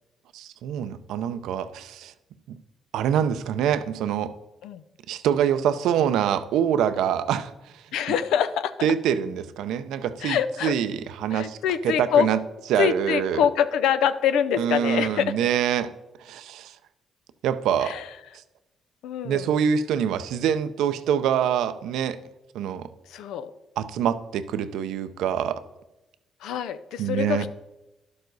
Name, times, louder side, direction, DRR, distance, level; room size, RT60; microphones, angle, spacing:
voice 1, 0.3-2.1 2.5-2.6 2.9-4.3 5.1-7.8 8.8-11.6 11.8-12.4 12.7-13.4 14.6-15.9 16.2-16.8 17.4-17.9 19.2-22.2 22.5-22.9 23.8-25.6 27.0-27.4, right 9 dB, 85° right, 11 dB, 0.6 m, -25 dB
voice 2, 7.9-8.7 10.2-10.7 11.3-12.3 12.8-15.4 17.8-18.1 19.0-19.5 23.1-23.5 26.4-27.5, left 8 dB, 85° left, 13 dB, 0.6 m, -24 dB
11.5 x 6.8 x 4.0 m, 0.98 s
cardioid pair, 90°, 0 cm